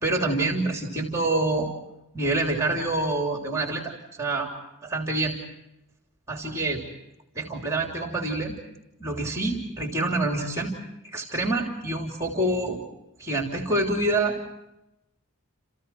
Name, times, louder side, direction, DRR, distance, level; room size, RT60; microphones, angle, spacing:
voice 1, 0.0-1.7 2.1-4.5 4.8-5.4 6.3-6.8 7.3-8.5 9.0-10.7 11.0-12.8 13.2-14.4, right 2 dB, 15° right, 1 dB, 3.2 m, -26 dB
30.0 x 29.0 x 4.6 m, 0.89 s
head